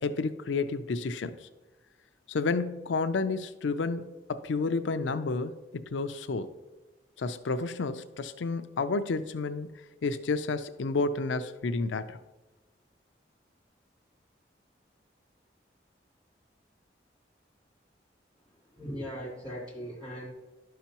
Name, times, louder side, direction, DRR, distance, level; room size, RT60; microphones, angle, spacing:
voice 1, 0.0-1.5 2.3-4.0 4.3-6.5 7.2-9.7 10.0-12.2, left 3 dB, 90° left, 11 dB, 0.5 m, -30 dB
voice 2, 18.8-20.3, equal, 20° right, -5 dB, 2.3 m, -39 dB
11.5 x 5.7 x 2.9 m, 1.1 s
head